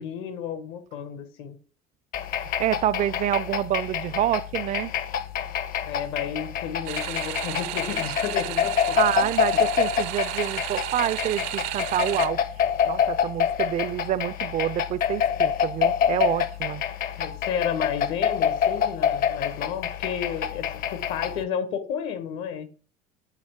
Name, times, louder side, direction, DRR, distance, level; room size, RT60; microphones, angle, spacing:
voice 1, 0.0-1.6 5.8-9.3 9.5-9.6 17.2-22.7, left 8 dB, 75° left, 1.4 m, -32 dB
sound 1, 2.1-21.4, left 8 dB, 55° left, 0.8 m, -27 dB
voice 2, 2.6-4.9 8.9-12.4 12.8-16.8, right 12 dB, 45° right, 0.4 m, -27 dB
sound 2, 6.9-12.3, right 14 dB, 80° right, 0.7 m, -33 dB
8.8 x 4.4 x 3.6 m
supercardioid pair, 105°, 18 cm